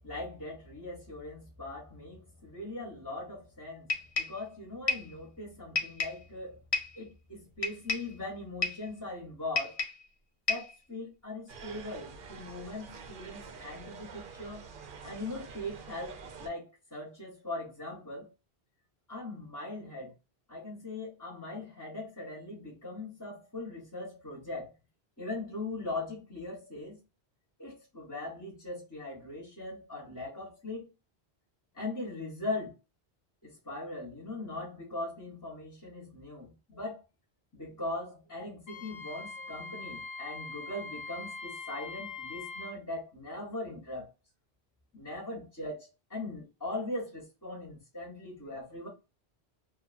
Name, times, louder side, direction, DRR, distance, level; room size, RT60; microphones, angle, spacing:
voice 1, 0.0-6.6 7.0-9.8 10.5-14.7 15.0-18.3 19.1-20.1 20.5-24.7 25.2-27.0 27.6-30.9 31.7-32.7 33.4-37.0 37.5-44.1 44.9-48.9, left 2 dB, 20° left, 0.8 m, -40 dB
sound 1, 3.9-4.4 4.9-5.1 5.8-6.2 6.7-7.0 7.6-8.1 8.6-8.9 9.6-10.0 10.5-10.8, left 4 dB, 40° left, 0.5 m, -32 dB
sound 2, 11.5-16.5, right 5 dB, 60° right, 0.7 m, -47 dB
Wind instrument woodwind instrument, 38.7-42.8, left 4 dB, 65° left, 0.8 m, -42 dB
2.5 x 2.3 x 2.4 m
omnidirectional pair, 1.1 m